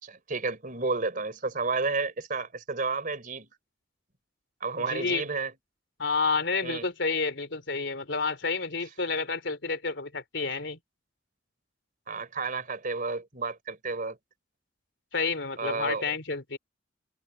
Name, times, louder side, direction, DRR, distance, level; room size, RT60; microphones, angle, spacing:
voice 1, 0.0-3.5 4.6-5.5 6.6-6.8 12.1-14.2 15.6-16.0, right 4 dB, 45° right, 4.2 m, -31 dB
voice 2, 4.8-5.2 6.0-10.8 15.1-16.6, left 4 dB, 70° left, 3.5 m, -30 dB
head